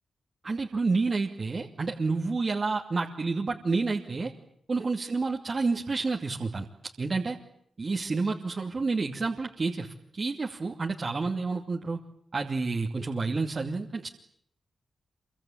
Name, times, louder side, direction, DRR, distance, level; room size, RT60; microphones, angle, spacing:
voice 1, 0.4-4.3 4.7-6.7 7.0-7.4 7.8-12.0 12.3-14.1, right 3 dB, 40° right, 0 dB, 2.6 m, -29 dB
27.5 x 24.5 x 8.7 m, 0.69 s
cardioid pair, 95°, 0 cm